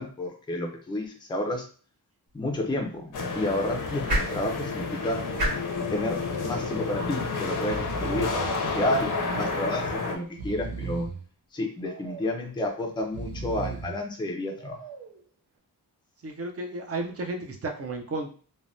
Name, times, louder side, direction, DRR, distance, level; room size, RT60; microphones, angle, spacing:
voice 1, 0.0-1.6 2.3-5.3 5.9-11.1 11.5-14.8, left 1 dB, 15° left, 2 dB, 0.4 m, -31 dB
sound 1, 2.3-8.5, equal, 60° right, 1.5 m, -36 dB
sound 2, 3.1-10.1, left 4 dB, 55° left, 0.6 m, -30 dB
Breathing, 5.7-5.8 6.1-6.2 7.1-7.3 7.5-8.5 9.1-9.8 10.2-11.2 11.8-12.5 13.0-14.0 14.6-15.2, right 5 dB, 85° right, 0.6 m, -38 dB
voice 2, 16.2-18.3, right 2 dB, 40° right, 3 dB, 0.5 m, -33 dB
3.3 x 2.1 x 2.6 m, 0.41 s
wide cardioid pair, 135°, 38 cm